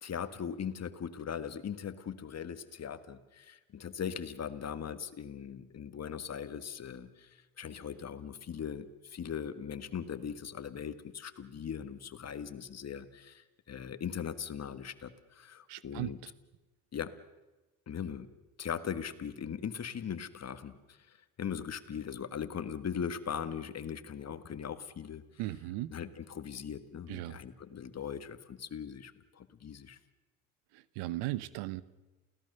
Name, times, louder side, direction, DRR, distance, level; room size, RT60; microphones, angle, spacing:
voice 1, 0.0-16.2 16.9-17.1 17.9-18.3 18.6-21.0 21.4-25.2 25.9-30.0, left 7 dB, 40° left, 12 dB, 1.7 m, -40 dB
voice 2, 15.7-16.3 25.4-25.9 27.1-27.4 30.7-31.8, right 16 dB, 80° right, 18 dB, 1.0 m, -37 dB
28.5 x 17.0 x 6.8 m, 1.1 s
supercardioid pair, 80°, 39 cm